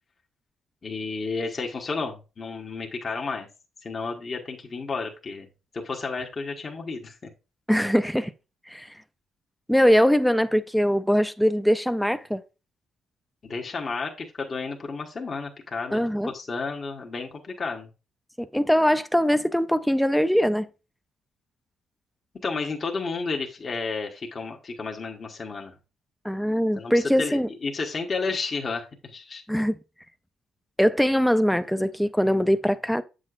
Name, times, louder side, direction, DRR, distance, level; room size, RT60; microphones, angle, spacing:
voice 1, 0.8-3.5 3.8-5.5 5.7-7.3 13.4-17.9 22.4-25.7 26.8-29.4, left 4 dB, 40° left, 1.1 m, -32 dB
voice 2, 7.7-8.3 8.7-8.9 9.7-12.4 15.9-16.3 18.4-20.7 26.2-27.5 29.5-29.7 30.8-33.0, equal, ahead, 0.4 m, -22 dB
7.5 x 6.3 x 2.5 m
cardioid pair, 90°, 0 cm